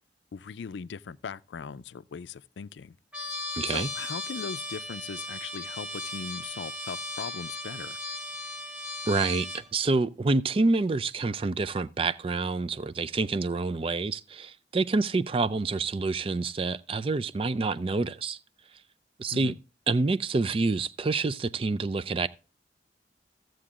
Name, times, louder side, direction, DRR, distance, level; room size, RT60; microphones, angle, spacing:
voice 1, 0.3-3.0 3.7-8.0 19.3-19.6, left 6 dB, 85° left, 0.4 m, -39 dB
Trumpet, 3.1-9.7, left 2 dB, 5° right, 1.3 m, -37 dB
voice 2, 3.6-3.9 9.1-18.4 19.2-19.5 19.9-22.3, right 3 dB, 30° right, 0.4 m, -27 dB
15.0 x 7.7 x 2.4 m
head